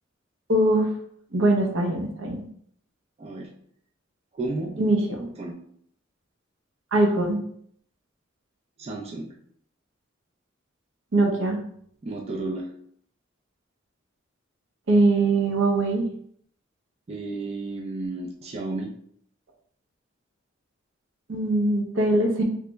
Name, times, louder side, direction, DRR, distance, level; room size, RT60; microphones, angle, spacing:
voice 1, 0.5-0.9 1.3-2.4 4.8-5.3 6.9-7.4 11.1-11.6 14.9-16.1 21.3-22.4, right 2 dB, 70° right, 1 dB, 0.6 m, -22 dB
voice 2, 3.2-3.5 4.3-4.8 5.4-5.6 8.8-9.4 12.0-12.7 17.1-18.9, right 2 dB, 30° right, -1 dB, 0.3 m, -32 dB
3.1 x 2.0 x 3.3 m, 0.64 s
head